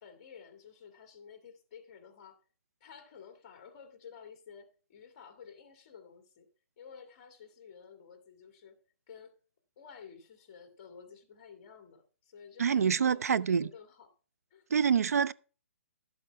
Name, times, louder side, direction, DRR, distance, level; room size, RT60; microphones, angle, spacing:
voice 1, 0.0-2.4 2.8-6.5 6.8-8.8 9.1-9.3 9.8-14.1 14.5-14.7, left 6 dB, 30° left, 2.1 m, -52 dB
voice 2, 12.6-13.7 14.7-15.3, right 7 dB, 85° right, 0.6 m, -26 dB
12.5 x 7.8 x 4.6 m
hypercardioid pair, 170°, 8 cm